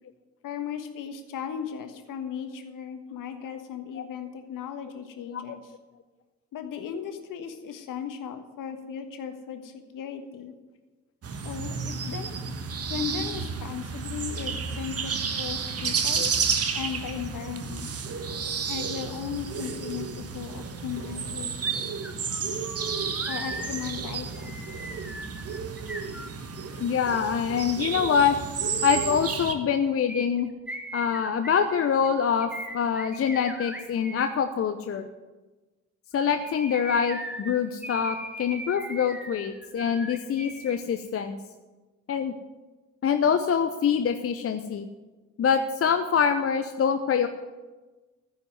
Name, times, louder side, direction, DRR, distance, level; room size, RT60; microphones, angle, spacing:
voice 1, 0.4-5.7 6.5-10.5 11.4-12.4 12.9-16.2 16.7-17.9 18.7-21.6 23.3-24.7, left 8 dB, 50° left, 8 dB, 1.5 m, -36 dB
sound 1, 11.2-29.5, right 6 dB, 35° right, 1.3 m, -31 dB
sound 2, 21.6-21.7 22.0-26.8 30.1-34.3 36.1-40.8 41.0-41.1, equal, 5° right, 1.6 m, -39 dB
voice 2, 26.8-28.4 28.8-30.5 30.9-35.1 36.1-41.4 42.1-42.3 43.0-44.9 45.4-47.3, left 7 dB, 35° left, 8 dB, 0.8 m, -25 dB
15.0 x 5.5 x 9.2 m, 1.2 s
figure-of-eight pair, 45°, 41 cm